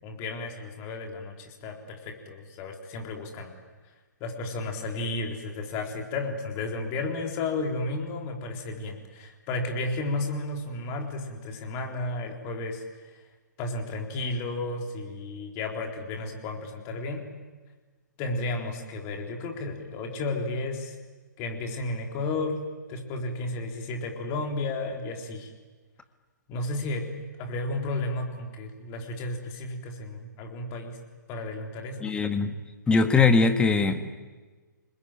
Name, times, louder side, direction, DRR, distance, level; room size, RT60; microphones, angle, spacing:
voice 1, 0.0-3.5 4.2-13.1 13.6-17.3 18.2-21.0 21.4-25.5 26.5-27.1 27.4-31.0 31.3-32.1, left 2 dB, 30° left, 2 dB, 3.8 m, -33 dB
voice 2, 32.0-32.6 32.9-34.1, left 4 dB, 10° left, 8 dB, 1.5 m, -21 dB
27.5 x 21.0 x 9.1 m, 1.3 s
figure-of-eight pair, 125°, 10 cm